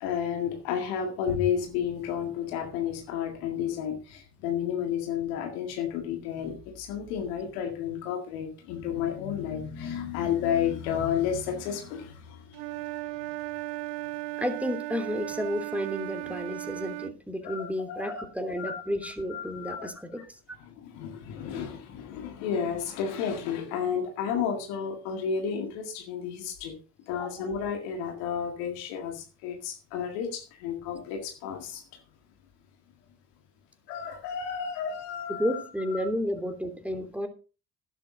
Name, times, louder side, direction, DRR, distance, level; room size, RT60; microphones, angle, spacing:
voice 1, 0.0-12.4 17.4-19.9 20.2-20.3 20.6-26.7 27.1-31.8 33.9-35.6 35.9-36.1, left 8 dB, 85° left, 4 dB, 2.1 m, -32 dB
Wind instrument woodwind instrument, 12.5-17.2, right 19 dB, 80° right, 0.5 m, -36 dB
voice 2, 14.4-20.4 27.2-27.5 35.3-37.3, equal, 5° right, 6 dB, 2.9 m, -32 dB
13.0 x 10.5 x 3.9 m, 0.34 s
hypercardioid pair, 45°, 44 cm